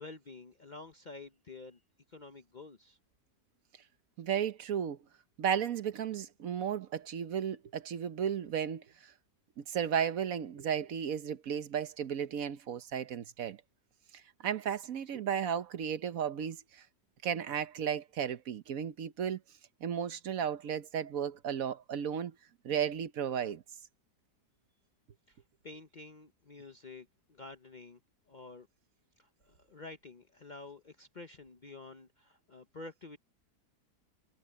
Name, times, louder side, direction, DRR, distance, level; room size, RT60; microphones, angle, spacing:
voice 1, 0.0-1.8 2.1-3.0 25.3-28.0 28.3-28.7 29.2-33.2, left 3 dB, 40° left, 0.7 m, -49 dB
voice 2, 4.2-5.0 5.4-9.1 9.6-13.6 14.1-16.8 17.2-19.4 19.8-22.3 22.6-23.6, right 8 dB, 65° right, 1.2 m, -34 dB
omnidirectional pair, 1.7 m